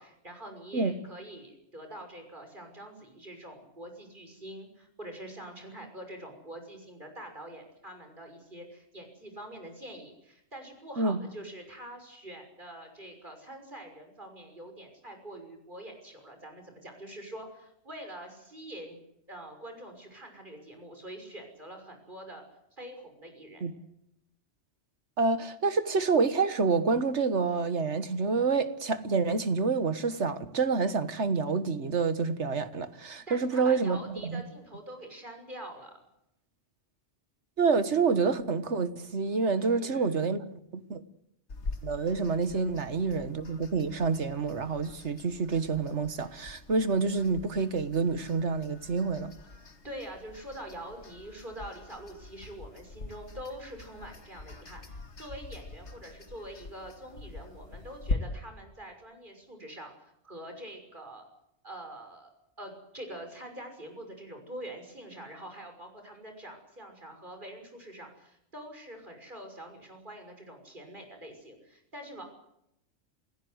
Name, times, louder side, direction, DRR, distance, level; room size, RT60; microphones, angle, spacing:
voice 1, 0.0-19.0 19.3-22.4 22.8-23.6 33.3-35.9 39.6-40.3 41.9-42.1 49.8-59.9 60.2-61.2 61.6-62.3 62.6-72.2, right 1 dB, 45° right, 6.4 m, -45 dB
voice 2, 25.2-34.0 34.2-34.4 37.6-41.0 41.8-49.3, right 4 dB, 75° right, 1.8 m, -28 dB
sound 1, 41.5-58.2, left 3 dB, 75° left, 2.3 m, -43 dB
28.5 x 16.5 x 8.0 m
omnidirectional pair, 1.2 m